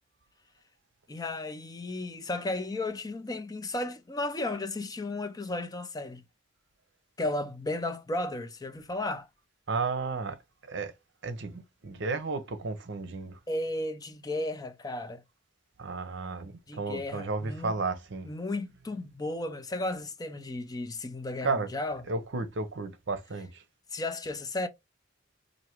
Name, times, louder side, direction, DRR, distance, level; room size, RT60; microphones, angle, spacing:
voice 1, 1.1-6.2 7.2-9.3 13.5-15.2 16.7-17.7 18.3-22.0 23.9-24.7, left 2 dB, 20° left, 0.5 m, -34 dB
voice 2, 9.7-10.4 10.6-10.9 11.2-13.4 15.8-18.3 21.4-21.7 22.1-23.6, right 4 dB, 65° right, 0.8 m, -33 dB
4.6 x 2.6 x 3.0 m
head